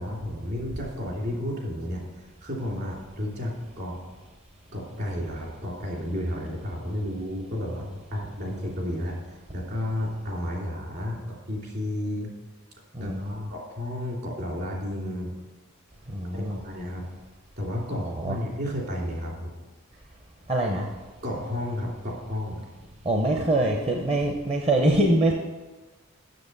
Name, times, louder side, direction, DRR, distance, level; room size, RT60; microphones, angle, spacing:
voice 1, 0.0-4.0 4.7-7.8 8.1-11.2 11.5-12.3 13.0-15.3 16.3-17.1 17.6-19.6 21.2-22.6, left 1 dB, 50° right, -2 dB, 2.9 m, -32 dB
voice 2, 12.9-13.4 16.1-16.6 18.2-18.3 20.5-20.9 23.0-25.3, right 1 dB, 30° right, 1 dB, 0.7 m, -24 dB
7.8 x 7.1 x 6.6 m, 1.3 s
head